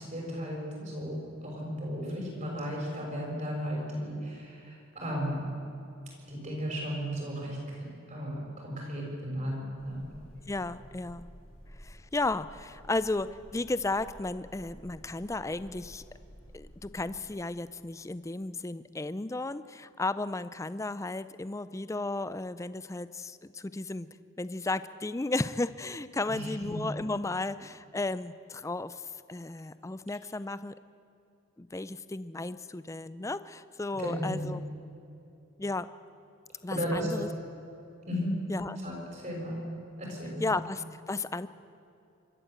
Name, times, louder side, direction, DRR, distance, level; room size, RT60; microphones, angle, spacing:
voice 1, 0.0-5.5 6.3-10.0 26.3-26.8 33.9-34.6 36.7-37.1 38.1-38.3 38.8-39.6 40.0-40.5, equal, 35° right, -2 dB, 6.6 m, -35 dB
sound 1, 9.8-17.2, equal, 80° left, 7.1 m, -52 dB
voice 2, 10.5-11.3 11.8-13.3 13.5-16.0 16.5-24.1 24.4-30.7 31.6-34.6 35.6-35.9 36.6-37.3 38.5-38.8 40.4-41.5, left 2 dB, 15° left, 14 dB, 0.4 m, -34 dB
25.5 x 13.5 x 8.0 m, 2.8 s
head